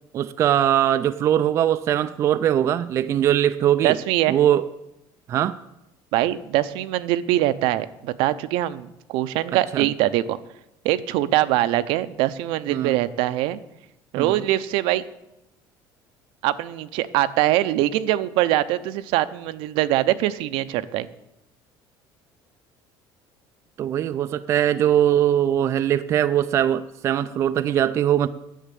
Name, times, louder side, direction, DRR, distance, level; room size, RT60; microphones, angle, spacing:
voice 1, 0.1-4.0 4.3-4.7 5.3-5.6 9.7-9.9 12.7-13.0 14.2-14.4 23.8-28.3, right 11 dB, 30° right, 11 dB, 0.3 m, -21 dB
voice 2, 3.8-4.4 6.1-10.4 10.8-13.6 14.1-15.0 16.4-21.1, right 14 dB, 70° right, 13 dB, 0.6 m, -23 dB
10.0 x 7.3 x 8.4 m, 0.88 s
cardioid pair, 175°, 9 cm